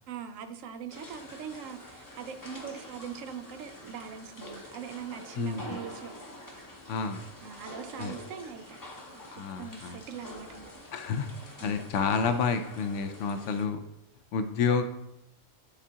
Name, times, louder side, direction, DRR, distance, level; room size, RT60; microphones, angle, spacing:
voice 1, 0.1-6.1 7.4-8.8 9.1-10.7 11.6-11.7, right 7 dB, 85° right, 9 dB, 1.0 m, -42 dB
sound 1, 0.9-13.7, left 1 dB, 20° left, 0.6 m, -47 dB
voice 2, 5.4-5.8 6.9-7.2 8.0-8.2 9.3-10.0 10.9-11.3 11.6-13.8 14.3-14.8, left 5 dB, 75° left, 8 dB, 0.9 m, -29 dB
9.8 x 3.5 x 2.8 m, 0.84 s
omnidirectional pair, 1.3 m